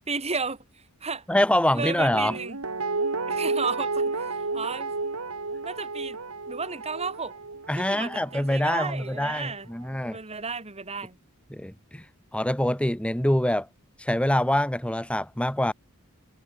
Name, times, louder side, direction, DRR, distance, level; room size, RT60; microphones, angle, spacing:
voice 1, 0.1-0.6 1.0-1.2 1.7-2.6 3.3-4.9 5.6-6.2 6.5-7.4 7.8-11.2, right 4 dB, 30° right, 3.1 m, -33 dB
voice 2, 1.3-2.4 7.7-10.2 11.5-12.0 12.3-13.7 14.0-15.7, left 1 dB, 5° left, 1.1 m, -25 dB
Guitar, 2.1-9.1 9.5-9.6, right 3 dB, 80° right, 2.1 m, -32 dB
head